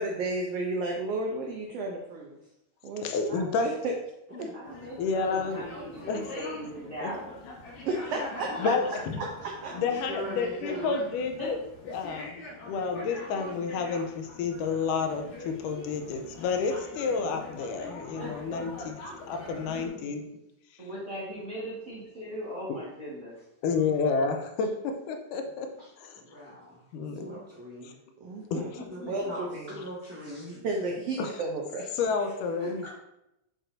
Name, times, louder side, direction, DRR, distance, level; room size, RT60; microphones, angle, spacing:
voice 1, 0.0-2.4 2.8-3.0 3.6-3.9 7.9-8.2 9.4-9.7 27.4-27.5 28.2-28.7 29.1-29.7 30.6-32.0, right 2 dB, 80° right, 0 dB, 1.4 m, -32 dB
voice 2, 3.0-3.7 4.3-4.4 5.0-5.7 6.1-6.3 7.0-7.1 8.0-8.2 8.6-9.2 9.7-11.6 11.9-12.3 12.7-19.0 19.3-20.3 23.6-25.7 26.0-26.2 26.9-27.3 27.8-27.9 28.5-28.8 31.2-31.5 31.9-32.9, left 5 dB, 85° left, 5 dB, 2.2 m, -30 dB
voice 3, 4.5-7.3 11.4-11.5 18.1-19.2 20.8-23.4 25.8-25.9 28.5-29.3 29.7-30.6 32.2-32.3, equal, 35° right, -8 dB, 1.3 m, -40 dB
sound 1, 4.6-19.9, left 2 dB, 65° left, 2.7 m, -44 dB
voice 4, 8.1-9.0 9.6-11.1 19.6-20.2 23.7-23.9 26.1-26.8 27.2-27.9 28.9-30.8 32.6-32.9, equal, 10° right, -7 dB, 0.8 m, -41 dB
6.4 x 6.0 x 2.6 m, 0.86 s
omnidirectional pair, 3.7 m